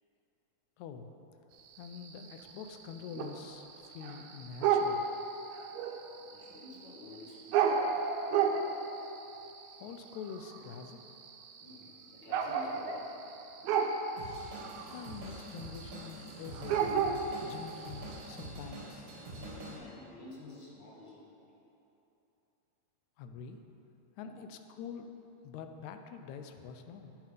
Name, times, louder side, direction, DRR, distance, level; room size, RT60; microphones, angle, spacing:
voice 1, 0.8-1.1 1.8-5.0 9.8-11.0 14.9-16.9 17.4-19.1 23.2-23.6 24.2-25.1 25.4-27.2, left 6 dB, 85° left, 7 dB, 2.0 m, -45 dB
sound 1, 1.6-18.5, right 6 dB, 80° right, 2.1 m, -34 dB
voice 2, 6.2-7.7 11.6-13.1 19.3-21.6 24.2-24.5, left 2 dB, 40° left, -5 dB, 2.3 m, -50 dB
Drum kit / Drum, 14.2-19.8, right 2 dB, 60° right, 3.0 m, -46 dB
10.5 x 9.3 x 5.1 m, 3.0 s
omnidirectional pair, 3.3 m